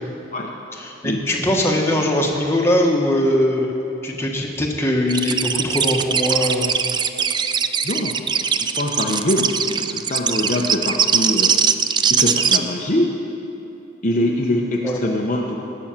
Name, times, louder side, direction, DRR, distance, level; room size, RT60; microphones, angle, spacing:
voice 1, 0.8-3.7 4.0-6.7 14.8-15.0, left 1 dB, 15° left, -1 dB, 1.4 m, -20 dB
sound 1, 5.1-12.6, right 7 dB, 20° right, 0.3 m, -20 dB
voice 2, 7.8-8.2 8.6-11.5 12.1-13.1 14.0-15.6, left 1 dB, 40° left, -1 dB, 0.9 m, -23 dB
17.5 x 6.3 x 7.3 m, 2.9 s
head